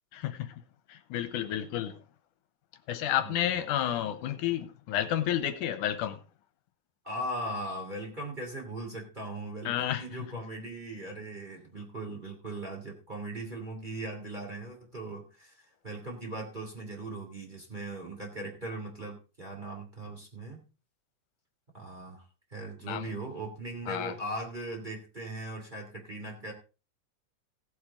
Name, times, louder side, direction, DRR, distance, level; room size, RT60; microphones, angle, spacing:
voice 1, 0.1-0.5 0.9-1.9 2.9-6.2 9.7-10.0 22.9-23.1 23.9-24.1, left 11 dB, 80° left, 11 dB, 2.4 m, -31 dB
voice 2, 3.2-3.6 7.0-20.6 21.7-22.2 22.5-26.5, right 1 dB, 15° right, 0 dB, 2.7 m, -39 dB
16.5 x 8.0 x 3.7 m, 0.33 s
omnidirectional pair, 3.6 m